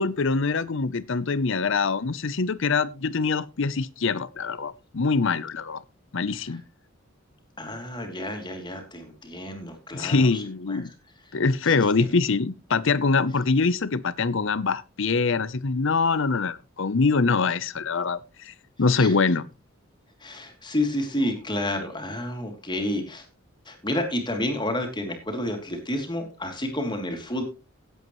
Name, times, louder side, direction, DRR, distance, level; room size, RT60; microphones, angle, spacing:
voice 1, 0.0-5.8 6.1-6.6 9.9-10.9 11.3-18.5 18.8-19.5, left 4 dB, 65° left, 0.7 m, -24 dB
voice 2, 7.6-10.4 10.7-10.8 11.6-12.1 18.9-19.1 20.2-23.3 23.7-27.4, left 1 dB, 20° left, 2.9 m, -30 dB
17.0 x 8.2 x 3.1 m
head